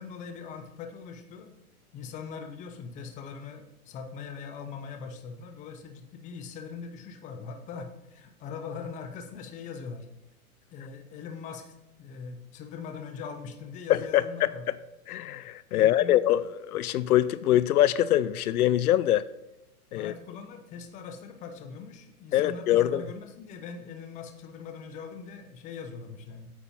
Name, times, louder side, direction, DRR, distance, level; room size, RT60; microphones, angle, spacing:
voice 1, 0.0-1.5 1.9-10.1 10.7-14.7 15.7-16.2 19.9-26.5, left 5 dB, 15° left, 0.6 m, -41 dB
voice 2, 13.9-14.5 15.1-19.3 19.9-20.1 22.3-23.0, left 12 dB, 75° left, 0.5 m, -24 dB
8.8 x 4.3 x 5.4 m
hypercardioid pair, 130°, 44 cm